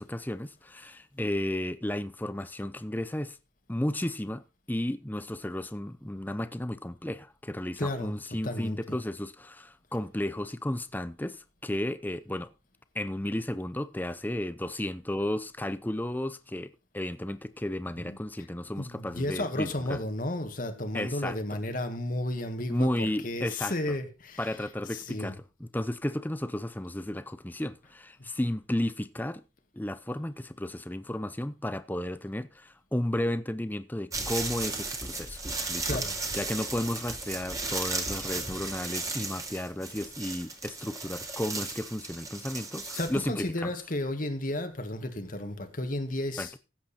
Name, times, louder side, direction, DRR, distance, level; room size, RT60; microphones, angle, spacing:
voice 1, 0.0-3.4 3.7-4.4 4.7-12.5 12.9-16.7 16.9-20.0 20.9-21.6 22.7-23.8 24.4-29.4 29.7-35.4 35.7-36.0 36.3-43.7 46.4-46.5, left 1 dB, 10° left, 0.6 m, -33 dB
voice 2, 7.8-8.1 8.4-8.8 18.0-18.2 18.8-22.9 23.2-24.4 24.9-25.3 35.9-36.1 42.9-46.5, left 1 dB, 45° left, 1.9 m, -33 dB
sound 1, 34.1-43.3, right 3 dB, 20° right, 2.2 m, -35 dB
15.5 x 8.1 x 4.3 m
head